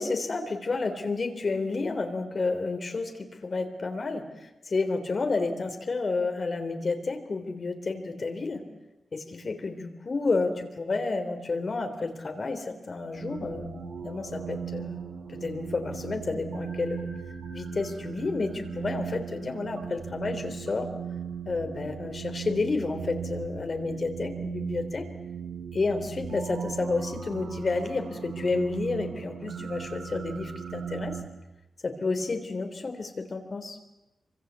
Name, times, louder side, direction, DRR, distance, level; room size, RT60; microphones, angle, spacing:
voice 1, 0.0-8.6 9.1-17.1 17.5-20.9 21.5-25.1 25.7-31.2 31.8-33.8, left 3 dB, 40° left, 6 dB, 3.5 m, -30 dB
sound 1, 13.1-31.2, right 7 dB, 85° right, 4.5 m, -37 dB
26.5 x 25.0 x 8.2 m, 0.98 s
wide cardioid pair, 145°, 0 cm